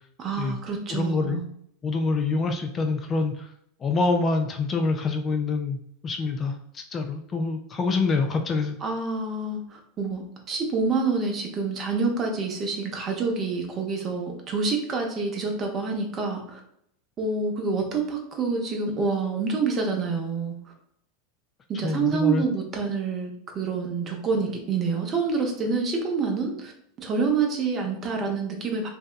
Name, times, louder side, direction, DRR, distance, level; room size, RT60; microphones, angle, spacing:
voice 1, 0.2-1.5 8.8-16.6 17.2-20.5 21.7-26.7 27.0-28.9, right 4 dB, 35° right, 2 dB, 0.6 m, -27 dB
voice 2, 0.9-1.4 1.8-3.5 3.8-8.8 21.8-22.4, left 3 dB, 30° left, 4 dB, 0.3 m, -26 dB
2.6 x 2.2 x 2.3 m, 0.71 s
hypercardioid pair, 90°, 0 cm